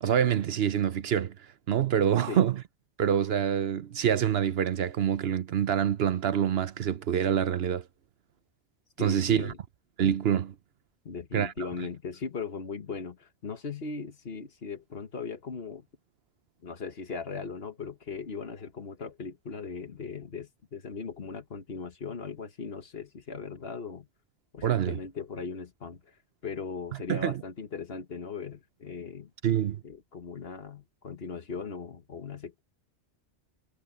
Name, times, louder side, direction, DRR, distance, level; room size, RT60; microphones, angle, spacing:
voice 1, 0.0-1.3 1.7-2.6 3.0-7.8 9.0-9.5 10.0-10.5 11.3-11.5 24.6-24.9 27.1-27.4 29.4-29.8, right 9 dB, 65° right, 0.9 m, -26 dB
voice 2, 9.0-9.6 11.0-15.9 16.6-24.1 24.5-26.2 26.4-29.3 29.8-32.6, left 5 dB, 60° left, 1.6 m, -38 dB
omnidirectional pair, 1.1 m